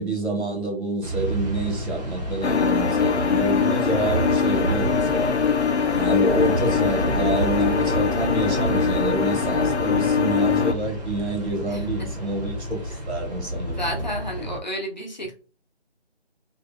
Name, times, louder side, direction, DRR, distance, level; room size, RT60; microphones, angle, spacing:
voice 1, 0.0-5.4 5.9-12.8 13.1-14.0, right 2 dB, 80° right, 1.3 m, -27 dB
sound 1, 1.0-14.6, right 1 dB, 40° right, 0.7 m, -30 dB
sound 2, 2.4-10.7, left 6 dB, 80° left, 0.5 m, -22 dB
voice 2, 13.7-15.3, equal, 40° left, 0.6 m, -31 dB
2.6 x 2.2 x 2.3 m
figure-of-eight pair, 175°, 33 cm